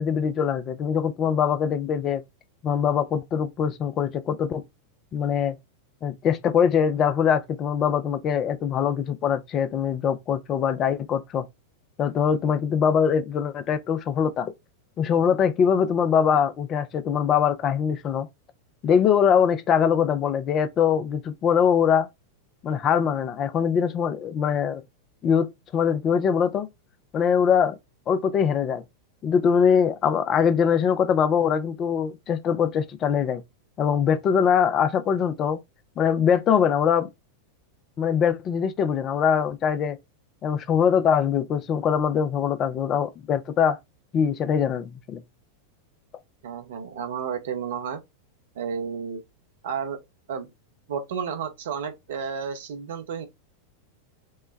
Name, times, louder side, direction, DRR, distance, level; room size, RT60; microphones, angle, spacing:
voice 1, 0.0-2.2 2.6-4.6 5.1-5.6 6.0-11.5 12.0-14.5 15.0-18.3 18.8-22.1 22.6-24.8 25.2-26.7 27.1-27.8 28.1-28.8 29.2-33.4 33.8-35.6 36.0-37.1 38.0-40.0 40.4-43.8 44.1-45.2, left 7 dB, 30° left, 0.5 m, -22 dB
voice 2, 46.4-48.0 48.5-49.2 49.6-50.0 50.3-50.5 50.9-53.3, right 7 dB, 60° right, 0.8 m, -31 dB
5.3 x 2.2 x 3.2 m
figure-of-eight pair, 90°, 0 cm